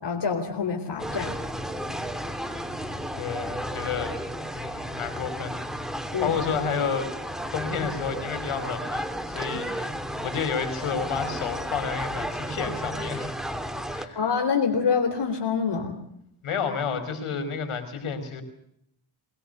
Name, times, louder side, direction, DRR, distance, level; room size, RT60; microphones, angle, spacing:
voice 1, 0.0-1.3 6.1-6.4 14.1-16.0, left 6 dB, 55° left, 4 dB, 3.8 m, -26 dB
sound 1, 1.0-14.1, equal, ahead, 3.0 m, -33 dB
voice 2, 3.2-4.1 4.5-5.6 6.2-7.1 7.5-13.3 13.9-14.2 16.4-18.4, left 6 dB, 85° left, 8 dB, 5.3 m, -30 dB
23.5 x 21.0 x 6.8 m, 0.74 s
cardioid pair, 80°, 49 cm